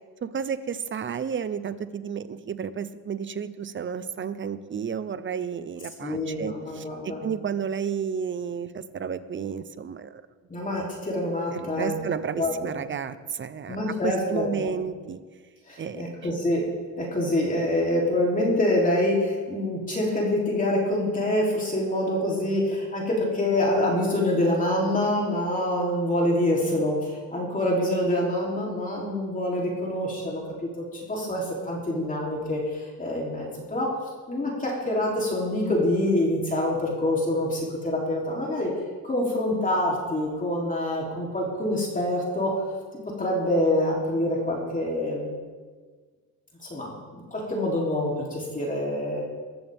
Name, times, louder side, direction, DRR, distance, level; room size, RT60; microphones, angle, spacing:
voice 1, 0.2-10.2 11.5-13.8 14.0-15.2 15.8-16.0, right 7 dB, 35° right, 13 dB, 0.8 m, -32 dB
voice 2, 6.0-7.2 10.5-12.0 12.3-12.7 13.7-14.7 15.7-16.7 17.0-33.9 34.3-38.7 39.0-42.5 43.2-45.3 46.6-49.2, left 1 dB, 20° left, -3 dB, 3.5 m, -26 dB
22.0 x 14.5 x 3.6 m, 1.5 s
cardioid pair, 135°, 36 cm